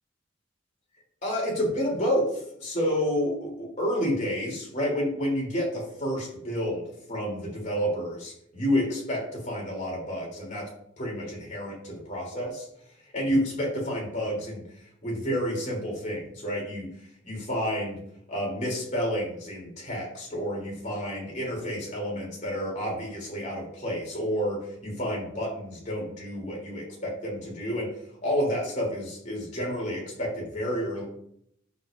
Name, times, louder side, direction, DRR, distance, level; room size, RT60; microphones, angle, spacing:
voice 1, 1.2-6.8 7.1-10.6 11.0-12.7 13.1-14.6 15.0-16.9 17.2-18.0 18.3-27.9 28.2-31.0, equal, 40° left, -3 dB, 3.1 m, -30 dB
8.7 x 7.1 x 2.6 m, 0.71 s
head